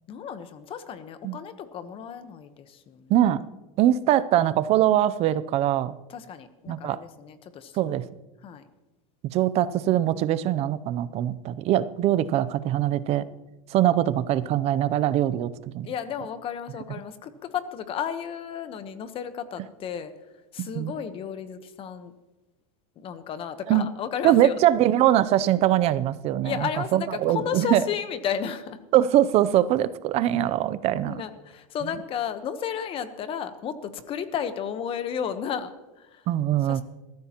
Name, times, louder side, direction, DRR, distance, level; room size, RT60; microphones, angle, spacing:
voice 1, 0.1-3.1 6.1-7.8 8.4-8.6 15.8-20.1 20.5-22.1 23.0-24.5 26.4-28.8 31.1-36.3 36.7-36.8, left 8 dB, 30° left, 11 dB, 1.0 m, -33 dB
voice 2, 3.1-3.4 3.8-6.0 6.7-7.0 7.8-8.0 9.3-13.3 13.7-15.9 20.6-20.9 23.7-23.9 24.2-27.8 28.9-31.2 36.3-36.8, right 12 dB, 35° right, 16 dB, 0.5 m, -22 dB
21.0 x 14.0 x 3.0 m, 1.1 s
supercardioid pair, 145°, 18 cm